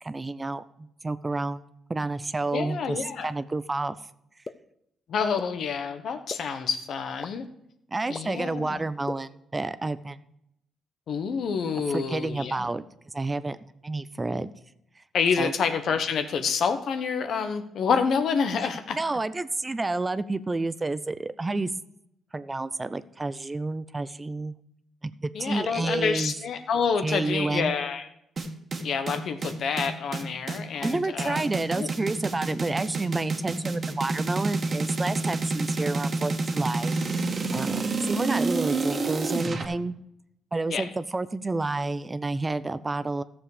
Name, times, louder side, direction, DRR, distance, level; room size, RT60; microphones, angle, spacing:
voice 1, 0.0-1.6 1.9-4.0 7.9-10.2 11.9-12.9 13.1-14.5 15.0-15.1 15.4-15.5 18.9-21.7 22.3-24.5 25.0-26.3 27.0-27.7 30.8-39.9 40.5-43.2, right 2 dB, 20° right, 14 dB, 0.5 m, -30 dB
voice 2, 2.5-3.3 5.1-7.4 8.1-8.8 11.1-12.7 15.1-19.0 25.3-28.1 28.8-31.4 31.7-31.9 40.7-40.9, left 6 dB, 65° left, 9 dB, 1.1 m, -28 dB
sound 1, 4.4-4.5 5.4-5.5 6.3-6.4 7.2-7.3 8.1-8.2 9.0-9.1, left 3 dB, 30° left, 0.6 m, -34 dB
sound 2, 28.4-39.6, right 3 dB, 40° right, 1.6 m, -28 dB
13.5 x 7.2 x 5.0 m, 0.79 s
cardioid pair, 90°, 0 cm